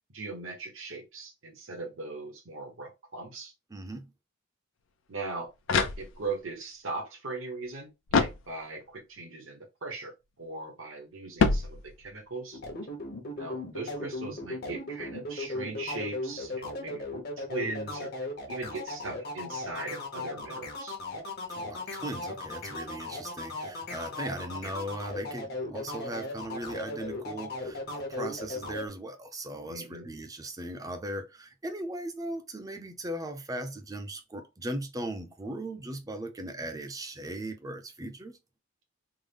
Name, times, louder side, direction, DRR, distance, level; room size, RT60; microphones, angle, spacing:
voice 1, 0.0-3.5 5.1-5.5 6.0-12.6 13.4-18.1 18.5-21.0 24.0-24.1 29.7-30.1, right 3 dB, 75° right, 1.1 m, -39 dB
voice 2, 3.7-4.1 21.5-38.4, right 1 dB, 20° right, 0.5 m, -38 dB
sound 1, 5.2-6.5 8.1-9.0 11.4-12.3, left 4 dB, 70° left, 0.5 m, -28 dB
sound 2, 12.5-28.9, left 2 dB, 50° left, 1.0 m, -37 dB
3.6 x 2.1 x 3.4 m
head